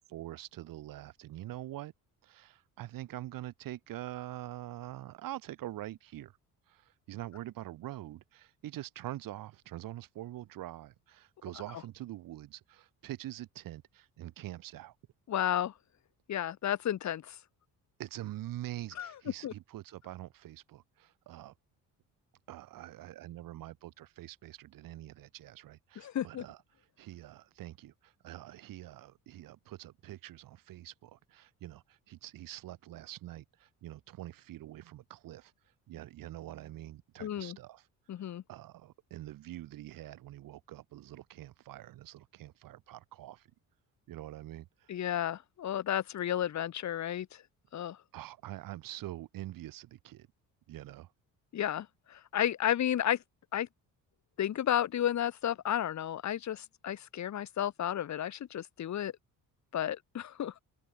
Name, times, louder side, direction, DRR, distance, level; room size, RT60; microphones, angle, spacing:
voice 1, 0.0-1.9 2.2-6.3 6.7-14.9 18.0-21.5 22.5-26.6 27.0-35.5 35.9-37.9 38.5-43.5 44.1-44.9 48.1-50.3 50.7-51.1, right 14 dB, 75° right, 3.4 m, -45 dB
voice 2, 15.3-15.7 16.3-17.3 19.0-19.1 19.4-19.5 26.0-26.4 37.2-37.6 38.1-38.4 44.9-47.3 47.7-48.0 51.5-53.2 53.5-53.7 54.4-59.1 59.7-60.6, left 10 dB, 55° left, 2.9 m, -32 dB
open air
cardioid pair, 125°, 34 cm